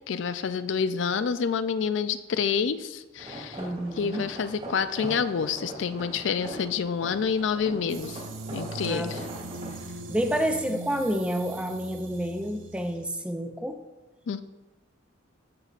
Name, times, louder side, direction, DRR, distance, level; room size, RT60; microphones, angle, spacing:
voice 1, 0.1-3.6 4.0-8.2 8.5-9.3 14.3-14.4, left 6 dB, 70° left, 12 dB, 0.4 m, -28 dB
sound 1, 3.2-9.7, right 1 dB, 35° right, 2.6 m, -41 dB
voice 2, 3.6-4.2 8.8-9.1 9.4-9.5 10.1-13.8, equal, 5° right, 7 dB, 0.5 m, -29 dB
sound 2, 7.9-13.1, right 2 dB, 80° right, 0.7 m, -40 dB
13.5 x 6.6 x 2.5 m, 1.2 s
head